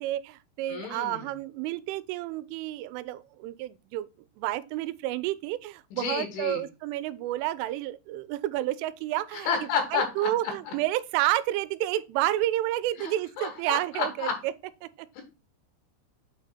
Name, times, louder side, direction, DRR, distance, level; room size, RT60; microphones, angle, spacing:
voice 1, 0.0-4.1 4.4-9.5 9.9-14.5 14.8-15.2, right 15 dB, 85° right, 3.0 m, -30 dB
voice 2, 0.7-1.3 5.9-6.6 9.3-10.3 10.7-10.8 13.0-14.3 15.2-15.3, left 6 dB, 75° left, 4.1 m, -31 dB
8.4 x 3.7 x 4.1 m
omnidirectional pair, 5.7 m